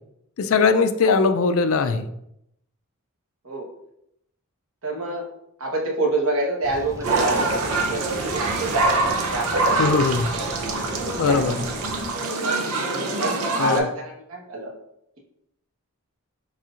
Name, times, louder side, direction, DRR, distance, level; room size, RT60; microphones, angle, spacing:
voice 1, 0.4-2.1 9.8-10.3 11.2-11.5 13.6-13.8, left 4 dB, 65° left, 11 dB, 0.4 m, -20 dB
voice 2, 4.8-5.3 5.6-10.0 10.7-11.4 12.4-12.7 13.2-14.7, right 2 dB, 70° right, -2 dB, 1.2 m, -28 dB
sound 1, 6.6-12.1, right 1 dB, 15° right, 0.4 m, -38 dB
sound 2, 7.0-13.8, right 3 dB, 90° right, 0.7 m, -24 dB
4.6 x 4.2 x 2.5 m, 0.77 s
head